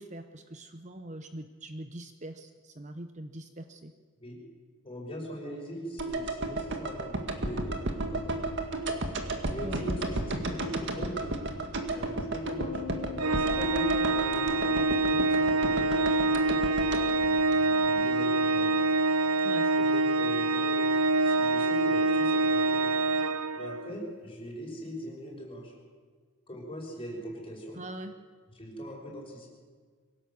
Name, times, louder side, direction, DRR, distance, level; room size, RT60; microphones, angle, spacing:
voice 1, 0.0-3.9 9.6-9.8 19.4-19.7 27.7-28.1, right 1 dB, 30° right, 8 dB, 0.8 m, -42 dB
voice 2, 4.8-7.1 7.4-8.2 9.5-11.5 11.9-12.8 13.3-16.5 17.2-18.8 19.6-20.9 21.2-22.9 23.5-25.7 26.5-27.8 28.5-29.5, equal, 25° left, -1 dB, 5.8 m, -41 dB
sound 1, 6.0-18.2 18.4-18.5, right 2 dB, 55° right, 2.1 m, -33 dB
sound 2, 12.6-15.1, left 7 dB, 80° left, 3.0 m, -44 dB
Organ, 13.2-24.0, right 2 dB, 80° right, 0.7 m, -26 dB
23.5 x 17.5 x 7.2 m, 1.5 s
head